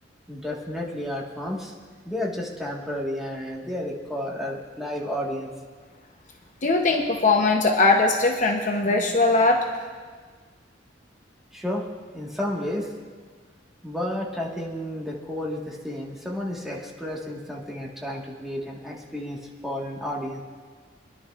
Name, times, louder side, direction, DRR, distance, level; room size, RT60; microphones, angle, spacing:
voice 1, 0.3-1.7 2.0-5.5 11.5-11.8 12.1-12.9 13.8-19.4 19.6-20.4, left 1 dB, ahead, -3 dB, 1.5 m, -31 dB
voice 2, 6.6-9.6, left 3 dB, 40° left, 2 dB, 0.8 m, -20 dB
25.0 x 11.0 x 2.4 m, 1.5 s
head